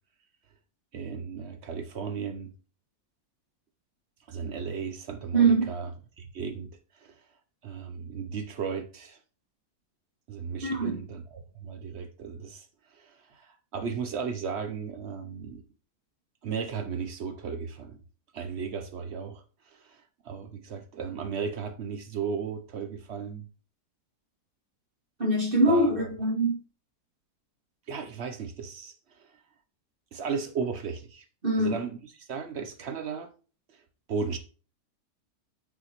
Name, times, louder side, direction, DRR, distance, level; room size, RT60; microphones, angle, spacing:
voice 1, 0.9-2.5 4.3-5.9 6.2-7.2 7.6-9.2 10.3-15.6 16.4-18.0 18.3-23.5 25.7-26.1 27.9-29.4 30.1-31.2 31.6-33.3 33.7-33.8 34.1-34.4, right 6 dB, 60° right, 0.7 m, -35 dB
voice 2, 5.3-5.7 10.6-11.0 25.2-26.6 31.4-31.8, right 2 dB, 35° right, 2.1 m, -23 dB
6.2 x 5.6 x 3.0 m
omnidirectional pair, 1.7 m